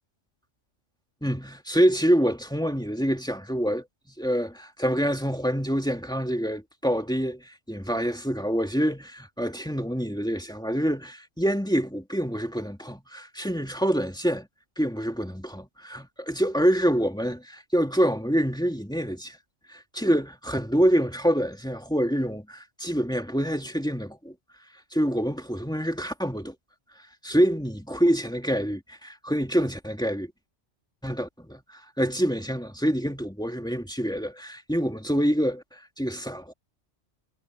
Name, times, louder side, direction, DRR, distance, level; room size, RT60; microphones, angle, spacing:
voice 1, 1.2-3.9 4.2-14.5 14.8-19.4 19.7-24.3 24.9-26.6 27.2-30.3 31.0-36.5, equal, 5° left, 2.4 m, -26 dB
omnidirectional pair, 1.2 m